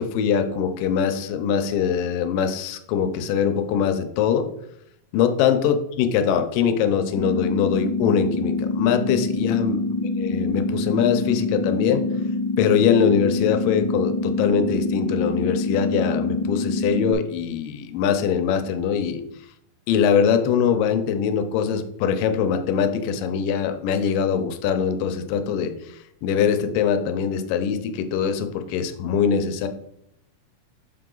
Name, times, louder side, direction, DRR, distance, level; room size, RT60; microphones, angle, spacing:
voice 1, 0.0-4.5 5.1-9.8 10.2-12.0 12.6-19.2 19.9-25.7 26.2-29.7, left 7 dB, 85° left, 8 dB, 2.3 m, -22 dB
sound 1, 7.1-17.1, left 2 dB, 40° left, 1.8 m, -25 dB
6.1 x 4.7 x 3.8 m, 0.75 s
omnidirectional pair, 3.9 m